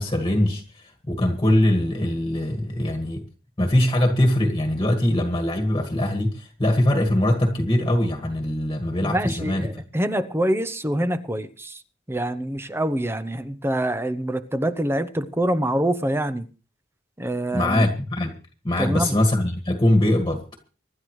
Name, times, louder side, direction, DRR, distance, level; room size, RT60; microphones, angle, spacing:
voice 1, 0.0-3.2 3.6-9.7 17.5-18.3 18.6-20.4, left 1 dB, 25° left, 1.8 m, -22 dB
voice 2, 9.0-11.8 12.1-16.4 17.2-17.9 18.7-19.1, right 1 dB, 15° right, 0.9 m, -25 dB
25.5 x 12.0 x 3.2 m
head